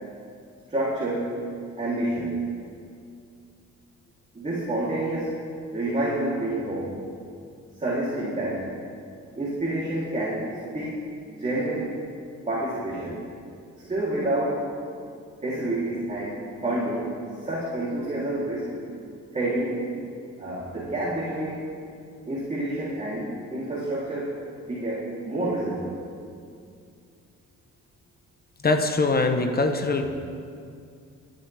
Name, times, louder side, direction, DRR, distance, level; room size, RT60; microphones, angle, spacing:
voice 1, 0.7-1.4 1.8-2.4 4.3-5.4 5.7-7.0 7.8-8.7 9.3-12.0 12.5-13.2 13.9-14.7 15.4-17.1 17.4-18.7 19.3-19.8 20.4-21.7 22.2-24.4 24.7-26.0, right 1 dB, 25° right, -8 dB, 3.3 m, -28 dB
voice 2, 28.6-30.1, left 3 dB, 30° left, 6 dB, 1.1 m, -22 dB
19.0 x 10.5 x 3.5 m, 2.4 s
cardioid pair, 90°, 30 cm